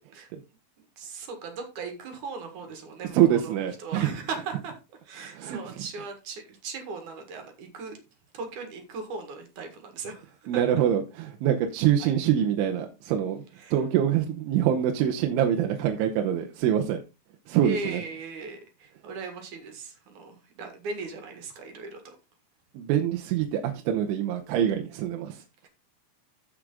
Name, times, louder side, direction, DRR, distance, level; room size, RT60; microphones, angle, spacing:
voice 1, 0.8-3.5 3.8-4.7 5.0-8.0 8.3-10.6 12.0-12.1 13.6-13.8 17.6-22.1, right 4 dB, 55° right, 5 dB, 2.5 m, -38 dB
voice 2, 3.1-4.1 5.2-5.9 10.5-13.4 13.7-17.0 17.5-18.0 22.7-25.4, right 10 dB, 90° right, 4 dB, 3.4 m, -25 dB
14.5 x 5.0 x 3.8 m, 0.28 s
omnidirectional pair, 5.5 m